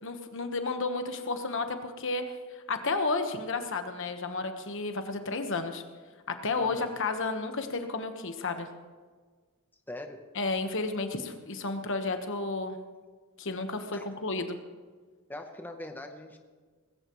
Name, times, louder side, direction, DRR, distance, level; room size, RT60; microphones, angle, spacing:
voice 1, 0.0-5.8 6.3-8.7 10.3-12.8 13.4-14.6, left 3 dB, 60° left, 7 dB, 1.3 m, -32 dB
voice 2, 6.6-6.9 9.9-10.2 13.9-14.1 15.3-16.4, left 1 dB, 10° left, 4 dB, 0.9 m, -41 dB
19.0 x 16.0 x 3.1 m, 1.5 s
head